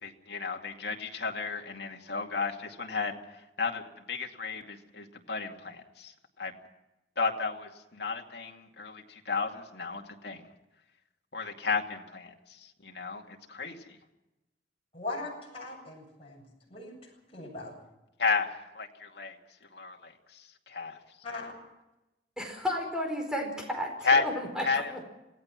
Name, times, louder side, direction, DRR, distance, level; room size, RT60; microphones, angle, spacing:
voice 1, 0.0-6.5 7.2-10.5 11.3-14.0 18.2-18.5 18.7-19.4 19.7-21.0 24.0-24.2 24.6-25.0, left 4 dB, 65° left, 2 dB, 2.4 m, -33 dB
voice 2, 14.9-17.8 21.2-21.5, left 2 dB, 35° left, -2 dB, 7.8 m, -40 dB
voice 3, 22.4-25.0, left 1 dB, 5° right, 2 dB, 4.7 m, -33 dB
27.0 x 17.5 x 6.1 m, 0.96 s
head